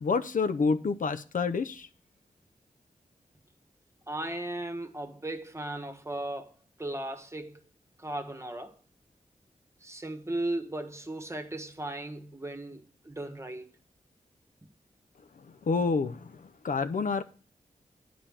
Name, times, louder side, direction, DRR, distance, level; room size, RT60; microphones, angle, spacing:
voice 1, 0.0-1.9 15.7-17.2, left 4 dB, 65° left, 0.6 m, -28 dB
voice 2, 4.1-6.5 6.8-7.6 8.0-8.8 9.8-13.7, right 1 dB, 20° right, 1.4 m, -36 dB
9.0 x 5.1 x 7.3 m
cardioid pair, 50°, 14 cm